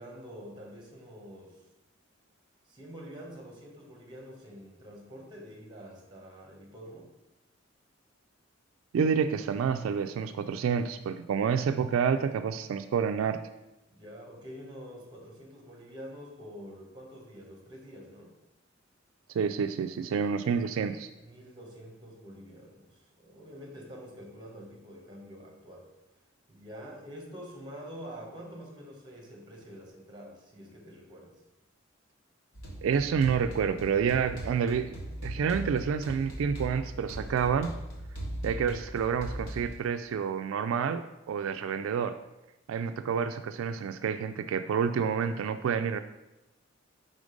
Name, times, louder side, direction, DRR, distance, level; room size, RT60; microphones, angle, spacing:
voice 1, 0.0-1.6 2.7-7.1 13.9-18.3 21.1-25.9 26.5-31.4, equal, 20° right, 0 dB, 1.3 m, -46 dB
voice 2, 8.9-13.4 19.3-21.1 32.8-35.0 35.2-37.7 38.4-42.2 42.7-46.0, right 6 dB, 85° right, 10 dB, 0.3 m, -28 dB
sound 1, 32.5-39.7, right 1 dB, 90° left, 1.7 m, -39 dB
5.1 x 3.8 x 5.1 m, 0.97 s
head